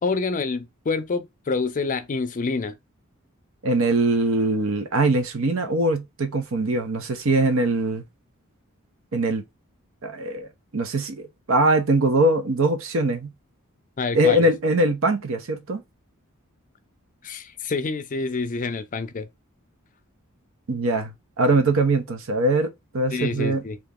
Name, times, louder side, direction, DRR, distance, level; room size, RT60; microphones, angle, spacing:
voice 1, 0.0-2.8 14.0-14.5 17.2-19.3 23.1-23.8, left 4 dB, 40° left, 0.5 m, -27 dB
voice 2, 3.6-8.0 9.1-9.4 10.0-13.3 14.1-15.8 20.7-23.6, right 2 dB, 70° right, 0.7 m, -22 dB
2.9 x 2.4 x 3.6 m
head